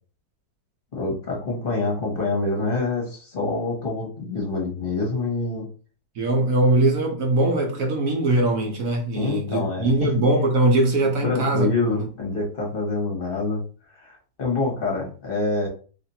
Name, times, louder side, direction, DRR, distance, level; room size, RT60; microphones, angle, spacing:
voice 1, 0.9-5.7 9.1-10.1 11.2-13.6 14.0-15.7, left 3 dB, 35° left, 1.2 m, -26 dB
voice 2, 6.2-12.1, right 2 dB, 60° right, 1.0 m, -21 dB
3.0 x 2.5 x 4.2 m
omnidirectional pair, 1.9 m